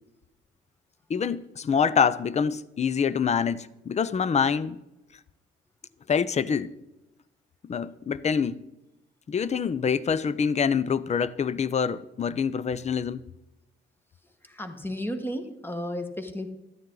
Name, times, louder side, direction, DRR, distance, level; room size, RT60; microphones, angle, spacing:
voice 1, 1.1-4.8 6.1-6.7 7.7-8.6 9.3-13.2, left 6 dB, 35° left, 0.6 m, -26 dB
voice 2, 14.4-16.5, equal, 10° left, 1.4 m, -33 dB
13.0 x 9.4 x 3.9 m
cardioid pair, 90°, 20 cm